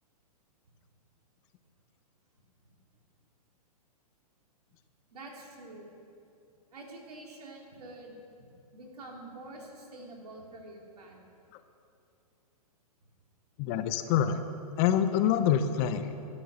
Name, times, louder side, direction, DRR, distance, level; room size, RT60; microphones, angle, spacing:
voice 1, 5.1-5.9 6.7-8.5 8.7-11.2, right 2 dB, 75° right, 0 dB, 3.1 m, -47 dB
voice 2, 13.6-14.4 14.8-16.1, left 9 dB, 35° left, 10 dB, 0.8 m, -26 dB
12.0 x 11.5 x 6.8 m, 2.6 s
hypercardioid pair, 120°, 20 cm